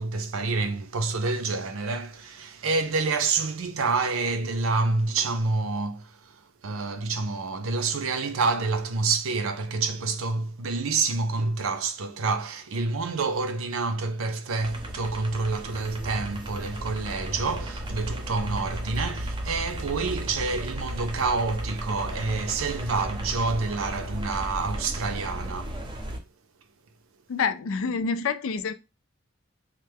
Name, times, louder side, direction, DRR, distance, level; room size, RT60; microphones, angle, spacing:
voice 1, 0.0-25.8, right 3 dB, 85° right, 0.5 m, -28 dB
sound 1, 14.6-26.2, right 1 dB, 25° right, 0.6 m, -35 dB
voice 2, 27.3-28.7, left 5 dB, 75° left, 0.4 m, -27 dB
3.2 x 2.1 x 3.3 m
head